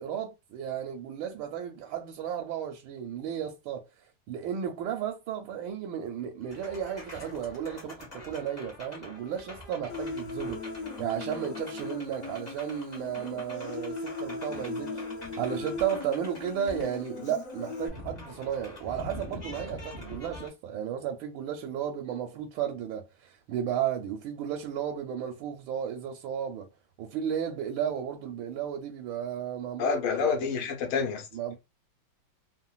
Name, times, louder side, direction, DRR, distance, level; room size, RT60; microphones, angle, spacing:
voice 1, 0.0-3.8 4.3-26.7 27.0-30.4 31.3-31.5, right 9 dB, 75° right, 1.3 m, -34 dB
sound 1, 6.4-20.5, left 1 dB, 30° left, 0.9 m, -45 dB
Human voice, 9.9-17.9, left 3 dB, 60° left, 0.9 m, -38 dB
voice 2, 29.8-31.3, left 5 dB, 80° left, 1.6 m, -28 dB
3.8 x 2.1 x 2.3 m
omnidirectional pair, 2.3 m